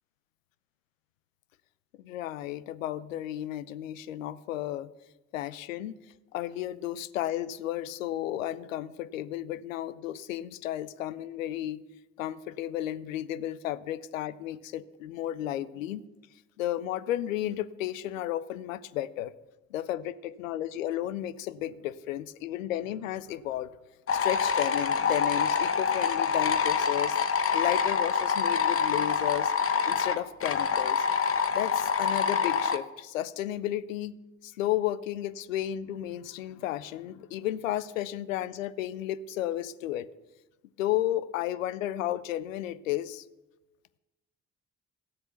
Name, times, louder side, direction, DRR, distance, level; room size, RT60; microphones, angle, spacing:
voice 1, 2.0-4.9 5.3-6.0 6.3-11.8 12.2-16.0 16.6-19.3 19.7-23.7 24.1-27.2 27.5-29.5 29.9-31.0 31.5-34.1 34.4-40.1 40.8-43.2, left 13 dB, 85° left, 17 dB, 0.5 m, -33 dB
sound 1, 24.1-32.8, left 6 dB, 35° left, 1.0 m, -26 dB
14.5 x 8.0 x 7.0 m, 1.1 s
figure-of-eight pair, 40°, 38 cm